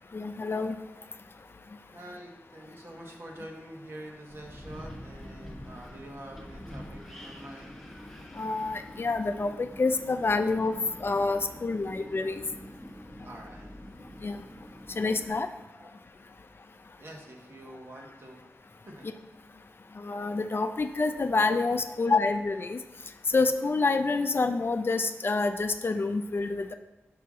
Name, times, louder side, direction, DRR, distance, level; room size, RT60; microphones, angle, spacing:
voice 1, 0.1-0.8 8.3-12.4 14.2-14.4 14.9-15.5 20.0-22.8 23.3-26.7, left 3 dB, 50° left, 7 dB, 0.5 m, -27 dB
voice 2, 1.9-7.8 13.2-13.7 15.8-15.9 17.0-18.4 18.9-19.1 21.8-22.2, right 1 dB, 55° right, 0 dB, 1.4 m, -46 dB
Wind, 4.3-15.3, equal, ahead, 1.2 m, -46 dB
5.9 x 5.6 x 3.7 m, 0.97 s
wide cardioid pair, 65°, 5 cm